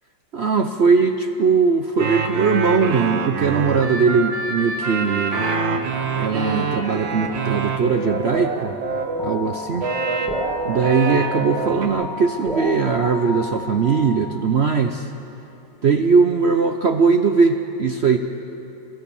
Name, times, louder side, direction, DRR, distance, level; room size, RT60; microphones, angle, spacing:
voice 1, 0.3-5.4 6.1-8.7 9.2-9.8 10.7-15.1 15.8-18.2, right 5 dB, 65° right, 7 dB, 0.6 m, -19 dB
sound 1, 2.0-9.3 9.8-11.9, right 4 dB, 85° right, 2.0 m, -26 dB
sound 2, 5.9-14.6, left 1 dB, ahead, 1.6 m, -33 dB
27.5 x 15.0 x 7.0 m, 3.0 s
omnidirectional pair, 2.0 m